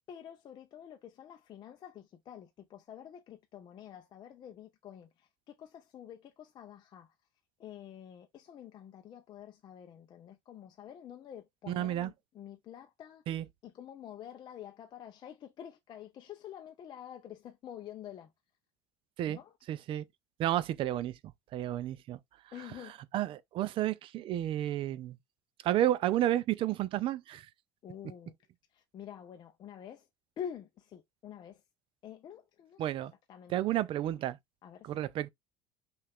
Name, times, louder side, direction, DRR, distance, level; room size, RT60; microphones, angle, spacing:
voice 1, 0.0-7.1 7.6-13.2 13.6-18.3 19.3-19.5 22.5-22.9 27.8-28.3 28.7-30.0 30.4-31.6 32.0-32.8 33.3-33.8 34.6-34.9, left 9 dB, 35° left, 0.5 m, -48 dB
voice 2, 11.7-12.1 13.3-13.5 19.2-19.4 19.7-20.0 20.4-21.1 21.5-22.2 22.6-25.2 25.6-27.5 32.8-33.1 33.5-34.4 34.8-35.3, right 13 dB, 40° right, 0.4 m, -31 dB
5.5 x 2.4 x 3.5 m
cardioid pair, 150°, 13 cm